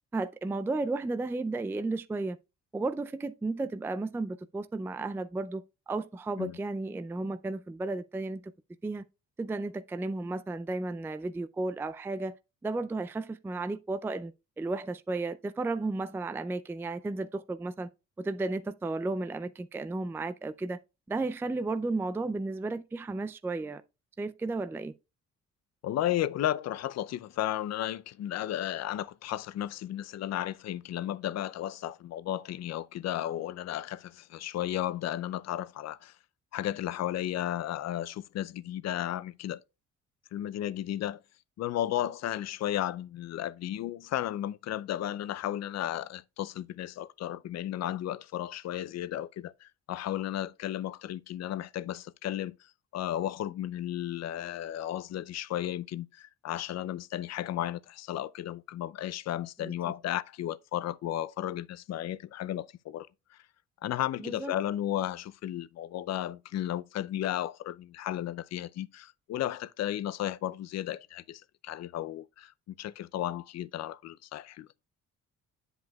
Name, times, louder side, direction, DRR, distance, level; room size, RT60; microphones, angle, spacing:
voice 1, 0.1-2.4 2.7-8.5 8.8-9.0 9.4-12.4 12.6-14.3 14.6-17.9 18.2-20.8 21.1-23.8 24.2-24.9 59.6-59.9 64.2-64.5, right 3 dB, 10° right, 0.3 m, -33 dB
voice 2, 25.8-36.1 36.5-39.6 40.3-41.2 41.6-63.4 63.8-72.5 72.8-74.7, left 12 dB, 60° left, 0.5 m, -34 dB
9.0 x 8.0 x 2.3 m
cardioid pair, 90°, 30 cm